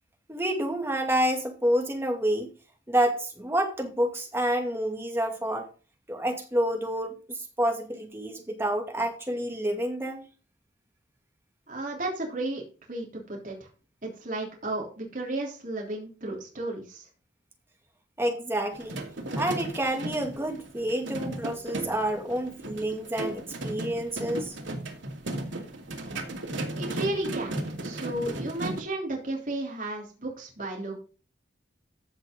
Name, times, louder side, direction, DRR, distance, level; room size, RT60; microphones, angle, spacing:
voice 1, 0.3-2.5 2.9-5.7 6.1-10.3 18.2-19.0 19.4-24.6, right 1 dB, 15° right, 3 dB, 2.3 m, -28 dB
voice 2, 11.7-12.6 12.9-13.7 14.0-17.1 26.8-27.6 27.8-31.0, right 2 dB, 45° right, -1 dB, 3.5 m, -33 dB
sound 1, 18.7-28.8, right 1 dB, 90° right, 2.4 m, -35 dB
15.0 x 6.4 x 3.8 m, 0.35 s
head